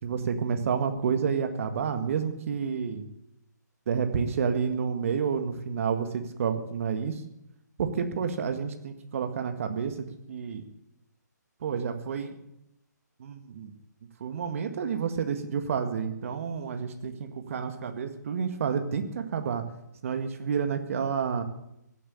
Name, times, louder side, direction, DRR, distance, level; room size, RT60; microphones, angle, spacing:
voice 1, 0.0-3.0 3.9-7.2 7.8-10.6 11.6-12.4 13.2-13.7 14.2-19.6 20.0-21.4, right 6 dB, 45° right, 8 dB, 1.8 m, -30 dB
16.0 x 7.9 x 8.6 m, 0.81 s
hypercardioid pair, 155°, 10 cm